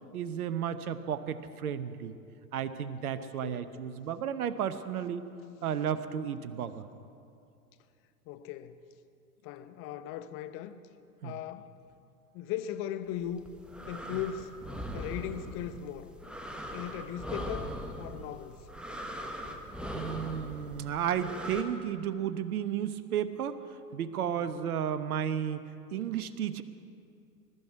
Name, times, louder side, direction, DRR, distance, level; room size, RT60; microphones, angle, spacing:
voice 1, 0.1-2.1 2.5-5.2 5.6-6.9 11.2-11.4 19.9-23.6 23.9-26.6, right 9 dB, 65° right, 13 dB, 0.9 m, -33 dB
voice 2, 3.2-3.6 8.3-8.8 9.4-10.8 11.2-11.7 12.3-13.4 13.9-14.5 14.9-16.1 16.7-17.7 18.0-18.6 19.4-19.7 20.6-20.8 24.4-24.9, left 10 dB, 30° left, 11 dB, 0.6 m, -39 dB
sound 1, 13.3-21.6, equal, ahead, 1.0 m, -40 dB
21.0 x 12.5 x 4.7 m, 2.5 s
figure-of-eight pair, 100°, 48 cm